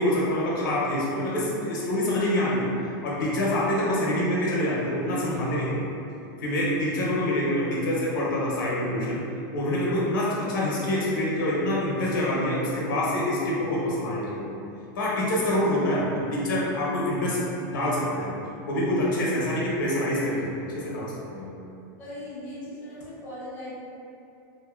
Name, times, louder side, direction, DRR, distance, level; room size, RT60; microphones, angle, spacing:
voice 1, 0.0-2.7 3.0-5.8 6.4-9.2 9.5-14.4 14.9-18.3 18.7-21.6, left 1 dB, 85° left, -5 dB, 0.8 m, -26 dB
voice 2, 22.0-23.7, left 1 dB, 15° left, -11 dB, 0.8 m, -39 dB
2.6 x 2.6 x 2.4 m, 2.7 s
supercardioid pair, 180°, 11 cm